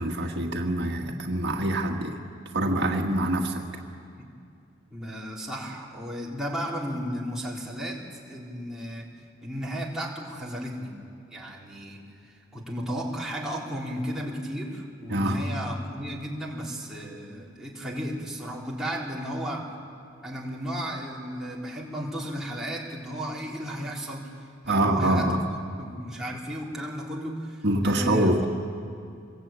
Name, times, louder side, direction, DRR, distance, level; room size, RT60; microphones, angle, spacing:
voice 1, 0.0-2.2 2.5-3.6 15.1-15.4 24.7-25.4 27.6-28.4, right 1 dB, 60° right, 1 dB, 1.8 m, -25 dB
voice 2, 4.9-9.1 9.4-11.0 11.3-19.7 20.2-24.3 24.7-25.4 25.8-28.4, equal, 5° right, -5 dB, 3.8 m, -34 dB
26.5 x 22.5 x 9.0 m, 2.4 s
head